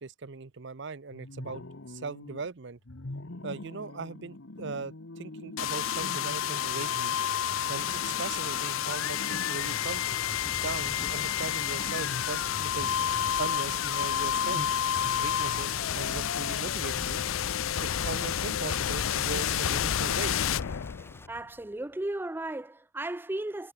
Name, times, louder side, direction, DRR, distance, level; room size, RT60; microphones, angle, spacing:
voice 1, 0.0-2.8 3.4-7.2 7.7-10.1 10.6-12.9 13.4-14.8 15.2-17.2 17.8-20.3, right 4 dB, 60° right, 0.8 m, -39 dB
sound 1, 1.1-2.5 2.8-16.7, left 2 dB, 65° left, 1.3 m, -45 dB
sound 2, 5.6-21.4, left 9 dB, 80° left, 0.5 m, -30 dB
Thunder / Rain, 7.8-21.3, left 1 dB, 10° left, 1.3 m, -47 dB
voice 2, 21.3-23.7, right 1 dB, 10° right, 0.4 m, -35 dB
head